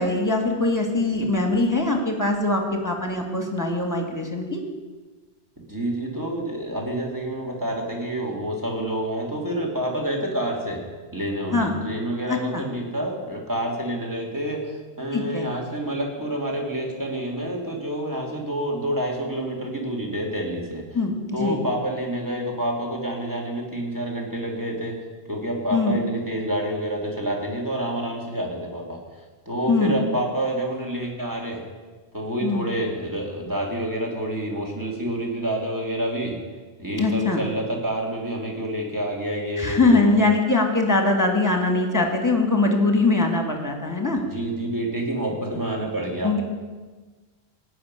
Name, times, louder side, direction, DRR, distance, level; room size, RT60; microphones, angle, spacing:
voice 1, 0.0-4.6 11.5-11.7 12.3-12.6 15.1-15.5 20.9-21.6 25.7-26.0 29.7-30.0 32.4-32.6 36.9-37.4 39.6-44.2 46.2-46.4, left 2 dB, 15° left, 3 dB, 1.9 m, -22 dB
voice 2, 5.7-10.8 11.1-20.8 21.3-25.0 25.3-29.0 29.5-31.6 32.1-36.4 36.8-40.2 44.1-46.3, right 1 dB, 15° right, 0 dB, 2.7 m, -28 dB
17.0 x 5.7 x 9.7 m, 1.3 s
omnidirectional pair, 1.1 m